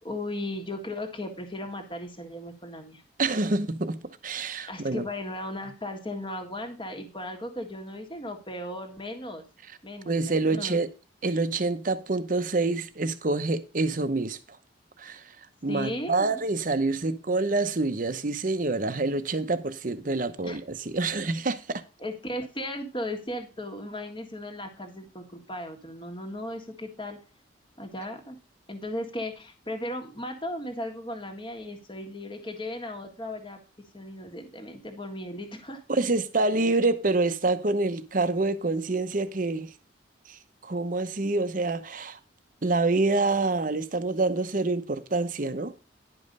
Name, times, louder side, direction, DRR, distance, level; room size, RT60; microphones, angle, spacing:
voice 1, 0.0-3.0 4.7-9.4 9.8-10.8 15.7-16.4 20.4-20.6 22.0-27.2 27.8-28.4 28.7-33.6 33.9-35.8, left 1 dB, 25° left, 1.7 m, -36 dB
voice 2, 3.2-5.1 10.0-10.9 11.2-14.4 15.0-15.3 15.6-21.8 35.9-39.7 40.3-42.2 42.6-45.7, right 3 dB, 45° right, 0.8 m, -27 dB
11.0 x 5.3 x 5.4 m
head